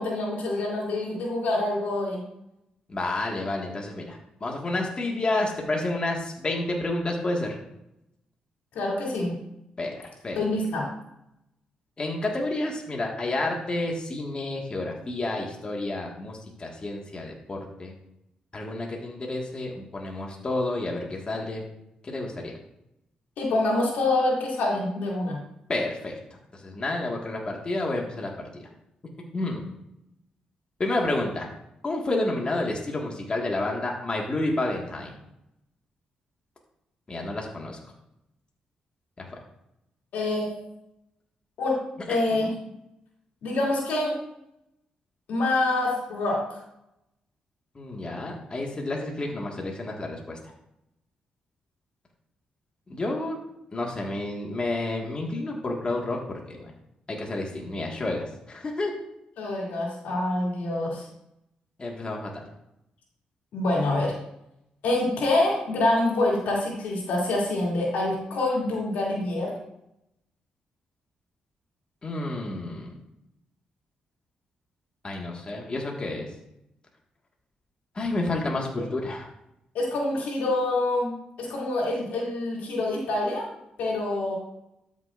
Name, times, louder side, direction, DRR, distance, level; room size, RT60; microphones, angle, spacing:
voice 1, 0.0-2.2 8.7-9.3 10.4-10.9 23.4-25.4 40.1-40.5 41.6-41.8 42.1-42.5 43.4-44.2 45.3-46.6 59.4-61.0 63.5-64.1 64.8-69.6 79.7-83.5 83.8-84.3, left 2 dB, 85° left, -3 dB, 2.8 m, -26 dB
voice 2, 2.9-7.6 9.8-10.4 12.0-17.9 18.5-21.7 22.0-22.6 25.7-26.1 26.5-28.3 28.6-28.7 29.3-29.6 30.8-31.5 31.8-35.2 37.1-37.8 39.2-39.3 47.8-50.4 52.9-53.4 53.7-56.7 57.1-59.1 61.8-62.5 72.0-72.9 75.0-76.3 77.9-79.3, left 2 dB, 35° left, -1 dB, 1.8 m, -30 dB
12.5 x 6.0 x 2.6 m, 0.82 s
cardioid pair, 65°, 3 cm